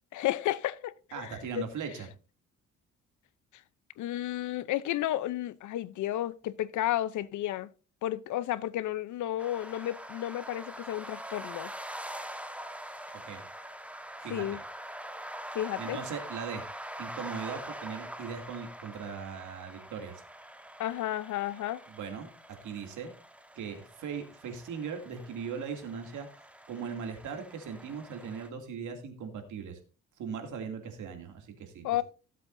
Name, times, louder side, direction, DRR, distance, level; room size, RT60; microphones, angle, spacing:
voice 1, 0.1-1.7 4.0-7.7 8.0-11.7 14.3-14.6 15.5-16.0 20.8-21.8 31.8-32.0, left 13 dB, 75° left, 0.7 m, -32 dB
voice 2, 1.1-2.1 13.3-13.4 14.2-14.5 15.8-16.6 17.0-20.1 21.9-22.3 22.6-23.1 23.6-26.3 26.7-29.8 30.2-32.0, right 6 dB, 75° right, 2.6 m, -39 dB
sound 1, 9.4-28.5, right 1 dB, 5° right, 1.3 m, -44 dB
16.5 x 7.7 x 2.6 m
cardioid pair, 90°, 30 cm